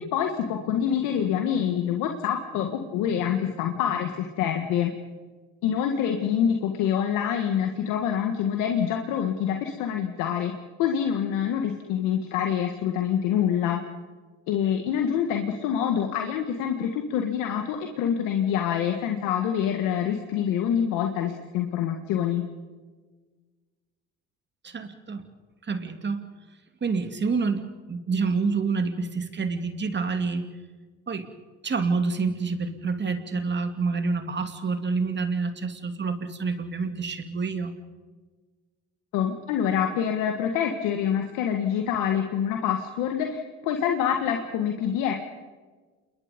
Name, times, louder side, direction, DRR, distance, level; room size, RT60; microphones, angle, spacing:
voice 1, 0.0-4.9 5.6-10.5 10.8-13.8 14.5-22.4 39.1-45.1, left 9 dB, 85° left, 4 dB, 1.8 m, -26 dB
voice 2, 24.6-25.2 25.6-26.2 26.8-30.5 31.1-31.3 31.6-37.7, right 4 dB, 35° right, 8 dB, 2.7 m, -28 dB
28.0 x 22.0 x 5.3 m, 1.4 s
supercardioid pair, 75°, 30 cm